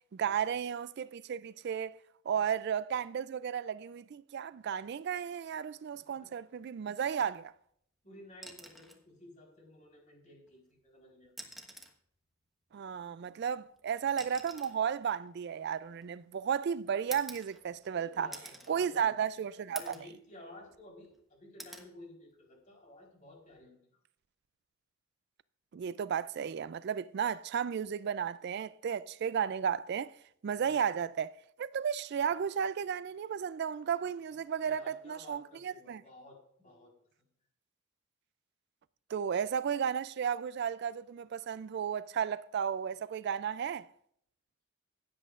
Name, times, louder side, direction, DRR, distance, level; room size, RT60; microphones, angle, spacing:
voice 1, 0.1-2.0 2.3-7.5 12.7-18.3 18.7-19.9 25.7-30.1 30.4-36.0 39.1-43.9, right 7 dB, 55° right, 0.3 m, -34 dB
voice 2, 5.9-6.3 8.0-11.3 17.9-19.1 19.8-23.8 30.6-30.8 34.6-36.9, left 2 dB, 40° left, 4.0 m, -54 dB
sound 1, 8.3-9.1 10.5-10.6 11.3-12.0 13.2-16.3 17.1-17.9 18.3-18.7 19.2-19.3 19.8-20.1 20.6-21.2 21.6-21.9 23.4-23.6, right 1 dB, ahead, 1.2 m, -48 dB
16.0 x 10.5 x 2.5 m
head